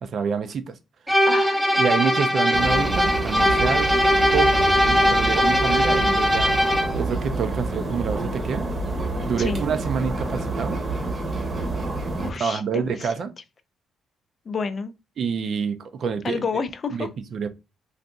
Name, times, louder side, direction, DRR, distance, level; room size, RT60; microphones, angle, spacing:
voice 1, 0.0-0.8 1.8-4.0 4.3-4.5 4.9-6.6 7.0-8.7 9.2-10.8 12.1-13.3 15.2-16.4 16.9-17.5, right 6 dB, 60° right, 0.5 m, -27 dB
sound 1, 1.1-7.0, equal, 5° right, 0.7 m, -20 dB
voice 2, 1.3-1.6 4.8-5.2 9.4-9.6 12.2-13.1 14.5-14.9 16.2-17.1, left 5 dB, 45° left, 0.4 m, -30 dB
sound 2, 2.5-12.3, right 2 dB, 40° right, 0.9 m, -28 dB
3.9 x 2.5 x 2.3 m
cardioid pair, 90°, 0 cm